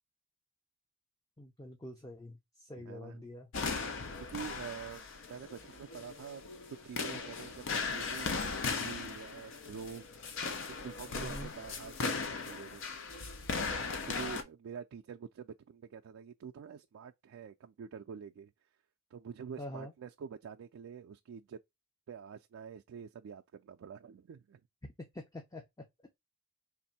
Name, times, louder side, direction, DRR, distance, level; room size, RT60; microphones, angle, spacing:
voice 1, 1.4-3.5 11.1-11.5 19.6-19.9 25.1-25.6, left 1 dB, 15° left, 0.6 m, -45 dB
voice 2, 2.8-3.2 4.2-6.6 6.8-10.1 10.5-12.8 13.6-18.5 19.1-21.6 22.1-24.6, right 7 dB, 75° right, 0.3 m, -47 dB
sound 1, 3.5-14.4, left 4 dB, 65° left, 0.6 m, -38 dB
3.5 x 2.6 x 4.1 m
head